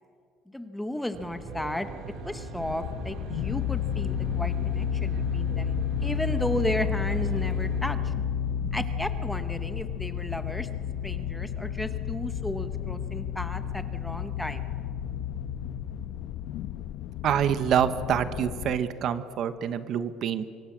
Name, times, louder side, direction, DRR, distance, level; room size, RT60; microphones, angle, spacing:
voice 1, 0.5-1.9 2.2-8.1 8.7-10.7 11.0-14.6, left 1 dB, 5° left, 9 dB, 1.0 m, -34 dB
Aircraft, 1.1-7.9, right 2 dB, 60° right, 3.6 m, -39 dB
sound 1, 2.6-18.8, left 8 dB, 60° left, 0.9 m, -31 dB
voice 2, 17.2-20.5, right 9 dB, 40° right, 12 dB, 1.0 m, -26 dB
25.5 x 24.0 x 7.4 m, 2.3 s
cardioid pair, 175°, 0 cm